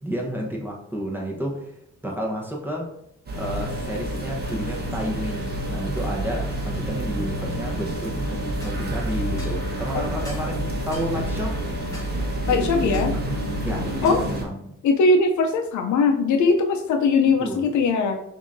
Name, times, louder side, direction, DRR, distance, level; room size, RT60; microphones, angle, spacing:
voice 1, 0.0-2.9 3.3-11.6 12.5-13.4 13.6-14.6 17.4-17.7, equal, 5° right, -1 dB, 1.0 m, -31 dB
sound 1, 3.3-14.4, right 1 dB, 35° right, 1.2 m, -28 dB
sound 2, 8.6-8.8 9.4-9.6 10.2-10.5 10.9-11.1 11.9-12.1 12.9-13.1 14.0-14.3, left 1 dB, 10° left, 1.3 m, -42 dB
voice 2, 12.5-13.1 14.0-14.2 14.8-18.2, left 4 dB, 75° left, 5 dB, 0.6 m, -20 dB
5.9 x 2.8 x 2.7 m, 0.76 s
cardioid pair, 90°, 30 cm